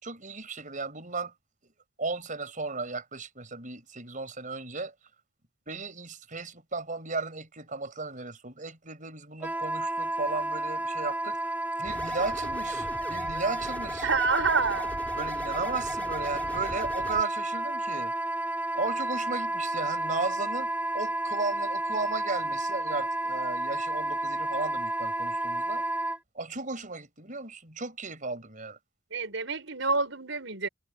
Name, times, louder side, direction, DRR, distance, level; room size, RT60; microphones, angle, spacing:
voice 1, 0.0-1.3 2.0-4.9 5.7-11.5 11.8-14.1 15.1-18.1 18.7-20.7 20.9-25.8 26.3-28.8, right 3 dB, 40° right, 5.8 m, -35 dB
Wind instrument woodwind instrument, 9.4-26.2, right 2 dB, 10° right, 2.0 m, -31 dB
sound 1, 11.8-17.2, left 1 dB, 10° left, 5.0 m, -41 dB
voice 2, 14.0-15.0 29.1-30.7, right 4 dB, 70° right, 6.1 m, -27 dB
head